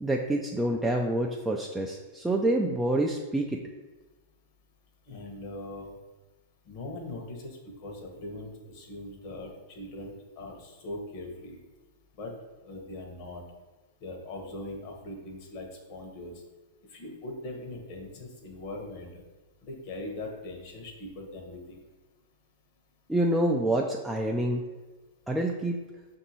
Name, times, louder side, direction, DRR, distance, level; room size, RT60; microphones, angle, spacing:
voice 1, 0.0-3.6 23.1-24.6 25.3-25.8, right 1 dB, 5° right, 0 dB, 0.3 m, -27 dB
voice 2, 5.1-5.9 6.7-11.6 12.2-12.3 12.6-13.4 14.0-16.3 16.9-19.2 19.6-21.8, left 2 dB, 50° left, 1 dB, 1.0 m, -41 dB
5.8 x 2.7 x 2.9 m, 1.2 s
hypercardioid pair, 100°, 0 cm